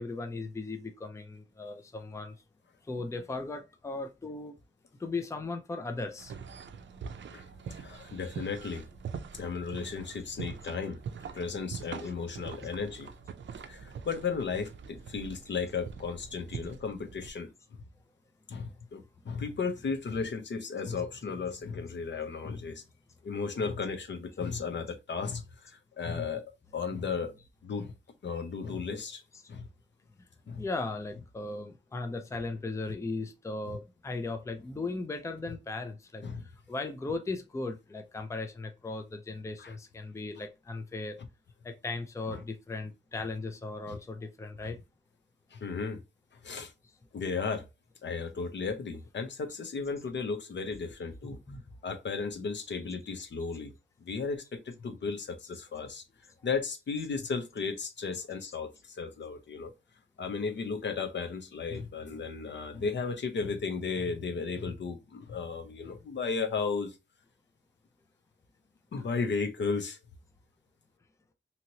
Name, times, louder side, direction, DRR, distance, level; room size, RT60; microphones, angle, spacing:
voice 1, 0.0-2.4 2.8-4.6 5.0-6.3 11.2-11.3 12.6-12.7 19.6-19.9 20.9-21.1 21.3-21.5 25.3-25.4 27.2-27.3 29.3-29.4 30.6-41.2 41.6-44.8 51.2-51.6, left 3 dB, 15° left, 0.4 m, -37 dB
sound 1, 6.2-17.3, right 6 dB, 65° right, 0.4 m, -44 dB
voice 2, 7.7-8.9 9.3-11.0 11.3-13.1 13.7-17.5 18.5-22.8 23.2-26.4 26.7-27.3 27.6-27.9 28.2-29.2 29.5-29.7 30.5-30.7 33.6-33.8 36.2-36.5 39.6-39.8 40.4-40.5 41.2-41.3 42.3-42.5 43.9-44.0 44.6-44.7 45.5-46.0 46.4-46.7 47.1-47.7 48.0-51.4 51.8-53.7 54.0-56.0 56.4-59.7 60.2-67.0 68.9-70.0, left 5 dB, 65° left, 0.6 m, -35 dB
2.9 x 2.8 x 2.7 m
wide cardioid pair, 125°, 20 cm